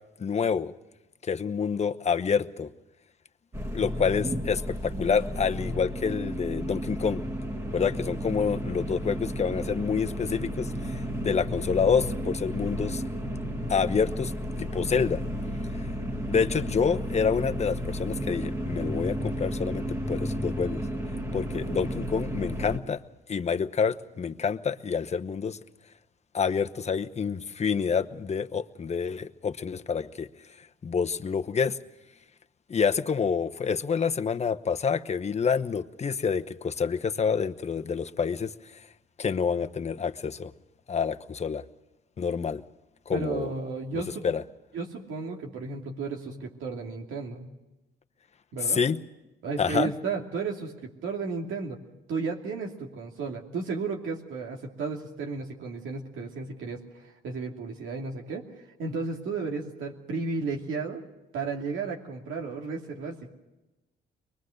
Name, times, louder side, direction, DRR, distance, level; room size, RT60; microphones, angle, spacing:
voice 1, 0.2-0.7 1.3-2.7 3.7-7.2 7.7-13.0 13.7-14.3 14.6-15.2 16.3-20.8 21.3-23.0 23.3-25.6 26.3-30.3 30.8-31.8 32.7-38.5 39.2-40.5 40.9-41.6 42.2-42.6 43.1-43.5 44.2-44.4 48.7-49.0 49.6-49.9, left 6 dB, 35° left, 8 dB, 0.9 m, -27 dB
sound 1, 3.5-22.8, equal, 15° right, 2.2 m, -33 dB
voice 2, 43.1-44.3 44.7-47.5 48.5-48.8 49.4-51.8 52.1-58.5 58.8-61.0 61.3-63.3, right 4 dB, 80° right, 1 dB, 2.7 m, -33 dB
23.5 x 21.0 x 6.5 m, 1.0 s
cardioid pair, 90°, 20 cm